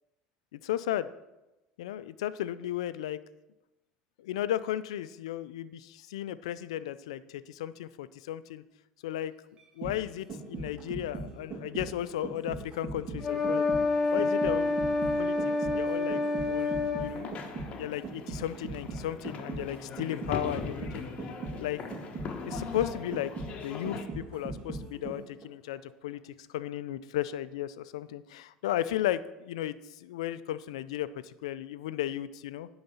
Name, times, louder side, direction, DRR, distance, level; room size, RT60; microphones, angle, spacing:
voice 1, 0.5-1.1 1.8-3.2 4.2-8.6 9.0-9.3 9.8-13.6 14.1-15.4 15.7-16.2 16.5-17.4 17.7-21.1 21.6-21.8 22.5-32.7, left 12 dB, 85° left, 15 dB, 0.4 m, -35 dB
sound 1, 9.6-25.4 25.8-25.9, right 3 dB, 35° right, 2.4 m, -40 dB
sound 2, 13.2-17.2, left 3 dB, 10° left, 3.6 m, -28 dB
sound 3, 17.0-24.0, left 5 dB, 40° left, 1.2 m, -40 dB
10.5 x 4.0 x 7.1 m, 0.98 s
supercardioid pair, 90°, 3 cm